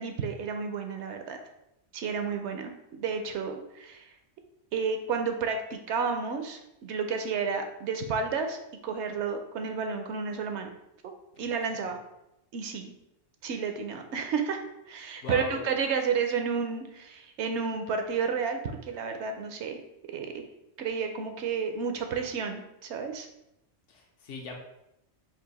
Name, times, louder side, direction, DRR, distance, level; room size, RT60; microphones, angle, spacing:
voice 1, 0.0-1.4 1.9-2.7 3.0-4.1 4.7-10.7 11.0-12.0 12.5-12.9 13.4-19.8 20.1-20.4 20.8-23.3, right 5 dB, 70° right, 5 dB, 0.8 m, -31 dB
voice 2, 15.2-15.6 23.9-24.5, left 3 dB, 75° left, 2 dB, 1.1 m, -39 dB
4.5 x 2.4 x 4.0 m, 0.86 s
omnidirectional pair, 1.3 m